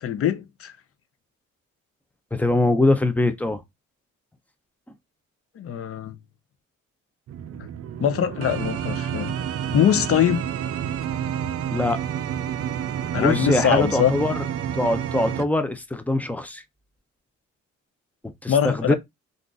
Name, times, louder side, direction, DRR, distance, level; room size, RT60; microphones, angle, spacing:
voice 1, 0.0-0.7 5.6-6.1 8.0-9.3 9.7-10.5 13.1-14.1 18.5-18.9, left 9 dB, 50° left, 0.6 m, -22 dB
voice 2, 2.3-3.6 11.7-12.0 13.2-14.4 14.8-16.6 18.2-18.9, left 2 dB, 5° left, 0.5 m, -23 dB
sound 1, 7.3-15.5, right 9 dB, 50° right, 0.4 m, -29 dB
2.5 x 2.4 x 3.8 m
cardioid pair, 90°, 30 cm